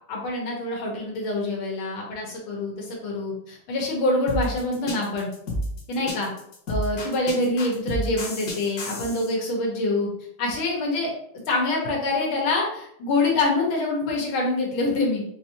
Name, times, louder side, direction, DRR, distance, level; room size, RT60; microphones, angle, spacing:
voice 1, 0.1-5.3 5.9-6.3 6.7-10.1 10.4-11.1 11.5-15.2, left 2 dB, 85° left, -2 dB, 1.9 m, -25 dB
sound 1, 4.3-9.3, left 1 dB, 55° left, 1.4 m, -30 dB
5.4 x 2.6 x 2.8 m, 0.70 s
omnidirectional pair, 2.2 m